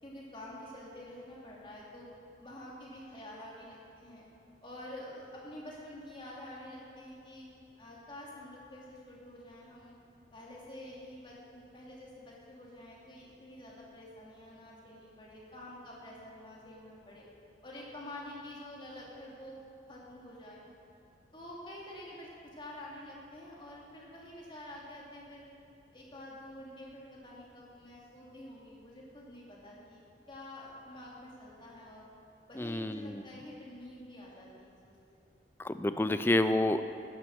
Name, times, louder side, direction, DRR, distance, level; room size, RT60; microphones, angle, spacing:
voice 1, 0.0-2.1 2.4-4.2 4.6-7.5 7.8-10.0 10.3-17.3 17.6-19.6 19.9-20.6 21.3-25.5 25.9-30.0 30.3-32.0 32.5-34.9, left 1 dB, 30° left, -4 dB, 2.5 m, -48 dB
voice 2, 32.6-33.2 35.6-36.8, left 1 dB, 15° left, 10 dB, 0.4 m, -29 dB
11.5 x 9.7 x 6.4 m, 2.6 s
head